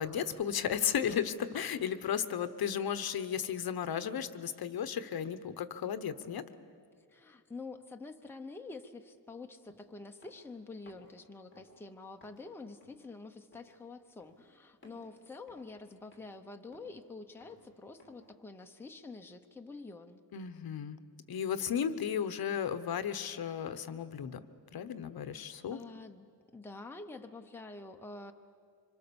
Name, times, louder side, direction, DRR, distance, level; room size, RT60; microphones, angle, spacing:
voice 1, 0.0-6.4 20.3-21.0 21.3-24.4 24.7-25.8, left 8 dB, 60° left, 12 dB, 1.0 m, -34 dB
voice 2, 7.1-20.2 25.3-26.3 26.5-28.3, left 3 dB, 5° left, 4 dB, 0.8 m, -47 dB
sound 1, 9.7-9.8 10.2-10.5 10.9-11.1 11.5-11.7 12.2-12.4 12.8-13.1 13.5-13.8 14.2-14.5 14.8-15.1 15.5-15.8 16.1-16.4 16.7-17.0 17.4-17.7 18.0-18.3, left 1 dB, 30° left, 4.4 m, -60 dB
26.5 x 25.5 x 7.0 m, 2.2 s
wide cardioid pair, 175°, 40 cm